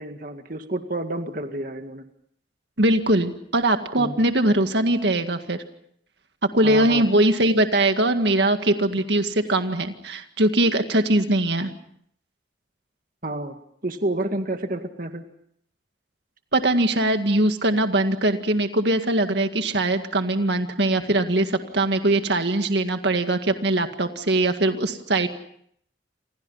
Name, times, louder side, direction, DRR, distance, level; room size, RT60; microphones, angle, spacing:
voice 1, 0.0-2.0 4.0-4.1 6.6-7.0 13.2-13.6 13.8-15.2, right 1 dB, 45° right, 6 dB, 2.0 m, -29 dB
voice 2, 2.8-5.6 6.5-11.7 16.5-25.3, right 1 dB, 65° right, 7 dB, 1.9 m, -21 dB
29.5 x 28.0 x 5.6 m, 0.67 s
head